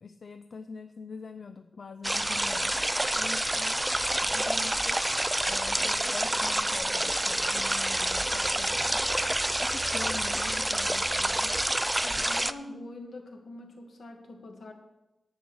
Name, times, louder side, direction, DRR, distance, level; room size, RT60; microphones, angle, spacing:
voice 1, 0.0-5.0 5.4-11.5, left 4 dB, 55° left, 8 dB, 0.5 m, -44 dB
sound 1, 2.0-12.5, right 1 dB, 10° right, 0.3 m, -28 dB
voice 2, 12.0-14.7, left 2 dB, 70° left, 2 dB, 2.2 m, -44 dB
11.0 x 8.6 x 6.4 m, 0.96 s
wide cardioid pair, 145°, 0 cm